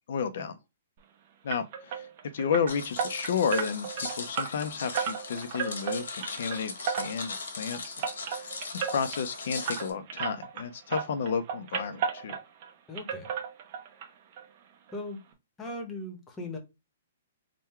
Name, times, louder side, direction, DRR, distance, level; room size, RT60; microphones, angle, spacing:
voice 1, 0.1-0.6 1.4-2.1 2.3-8.0 8.3-12.4, left 6 dB, 60° left, 0.5 m, -32 dB
sound 1, 1.5-10.6 10.9-12.7 12.9-14.1 14.3-14.4 14.9-15.0 15.3-15.4, right 7 dB, 35° right, 0.9 m, -34 dB
sound 2, 2.7-9.9, left 4 dB, 85° left, 1.3 m, -39 dB
voice 2, 12.9-13.3 14.9-15.2 15.6-16.6, left 1 dB, 10° left, 0.9 m, -38 dB
3.7 x 2.2 x 4.3 m
hypercardioid pair, 160°, 0 cm